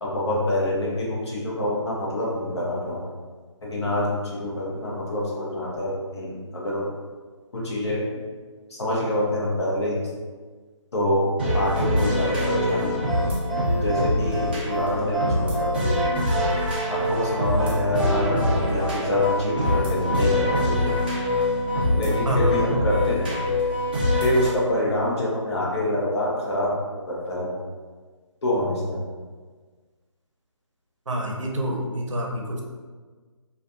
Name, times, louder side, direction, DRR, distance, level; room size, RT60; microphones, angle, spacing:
voice 1, 0.0-3.0 3.6-6.9 7.5-8.0 8.7-10.1 10.9-13.3 13.8-16.0 16.9-20.9 22.0-23.4 24.2-26.7 27.1-27.5 28.4-29.0, left 1 dB, 55° left, -5 dB, 0.9 m, -26 dB
sound 1, 11.4-24.5, left 1 dB, 20° right, 0.4 m, -24 dB
voice 2, 31.1-32.6, right 1 dB, 70° right, 0 dB, 0.6 m, -28 dB
2.4 x 2.3 x 2.5 m, 1.4 s
figure-of-eight pair, 150°, 16 cm